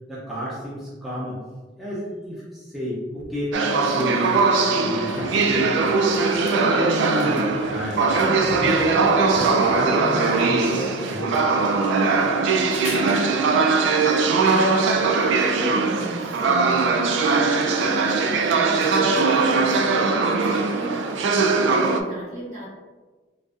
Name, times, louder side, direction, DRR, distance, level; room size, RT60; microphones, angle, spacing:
voice 1, 0.1-1.4 1.8-5.8 6.3-11.4, equal, ahead, -9 dB, 0.6 m, -31 dB
sound 1, 3.2-3.3 4.6-13.7 17.1-17.2, left 2 dB, 80° left, 0.5 m, -40 dB
sound 2, 3.5-22.0, right 4 dB, 75° right, 0.3 m, -20 dB
voice 2, 15.0-22.7, equal, 45° right, -8 dB, 1.4 m, -36 dB
3.9 x 2.5 x 2.4 m, 1.3 s
head